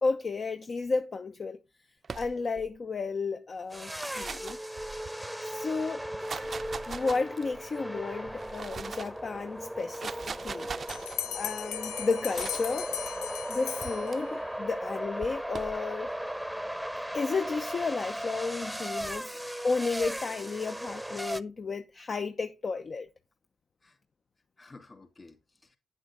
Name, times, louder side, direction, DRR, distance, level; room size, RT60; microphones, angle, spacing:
voice 1, 0.0-1.6 2.1-4.6 5.4-6.0 6.9-10.7 11.3-12.9 13.5-16.1 17.1-19.3 19.6-23.1, left 4 dB, 50° left, 0.9 m, -32 dB
sound 1, 2.0-2.7 3.8-5.3 6.0-7.6 8.3-9.2 9.8-11.2 12.3-12.8 13.8-14.2 15.2-15.8, right 5 dB, 50° right, 0.5 m, -41 dB
sound 2, 3.7-21.4, equal, ahead, 0.9 m, -37 dB
Bell, 10.9-14.5, left 10 dB, 90° left, 0.7 m, -38 dB
voice 2, 24.6-25.8, left 3 dB, 35° left, 3.9 m, -54 dB
9.8 x 7.8 x 3.8 m
supercardioid pair, 55°, 0 cm